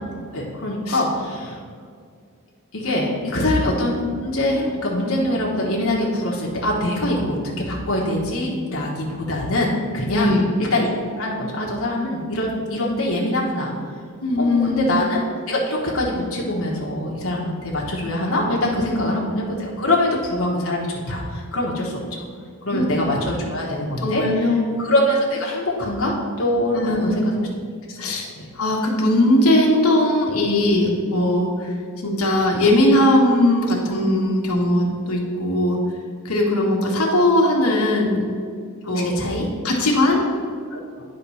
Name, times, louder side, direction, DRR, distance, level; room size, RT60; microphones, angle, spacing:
voice 1, 0.3-1.6 2.7-7.4 7.7-13.7 14.4-15.2 15.5-22.2 22.7-24.2 24.8-27.5 27.9-28.0 28.4-28.5 38.8-39.5 40.7-40.8, left 1 dB, 65° left, -4 dB, 1.2 m, -23 dB
voice 2, 10.1-10.5 14.2-14.9 22.7-22.8 24.0-24.7 26.7-27.2 28.0-28.3 28.5-35.8 36.2-38.2 38.8-39.1 39.6-40.2, left 1 dB, 80° left, -1 dB, 1.4 m, -19 dB
9.6 x 3.7 x 5.6 m, 2.2 s
head